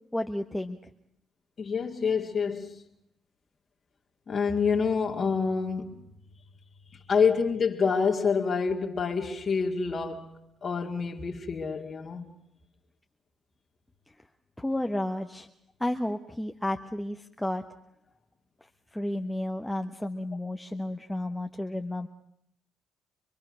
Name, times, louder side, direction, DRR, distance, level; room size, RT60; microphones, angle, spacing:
voice 1, 0.1-0.8 14.6-15.5 15.8-17.6 18.9-22.1, left 1 dB, 10° left, 1.3 m, -32 dB
voice 2, 1.6-2.8 4.3-6.1 6.9-10.3 10.6-12.3, left 5 dB, 50° left, 2.2 m, -27 dB
26.0 x 22.5 x 6.5 m
hypercardioid pair, 50°, 0 cm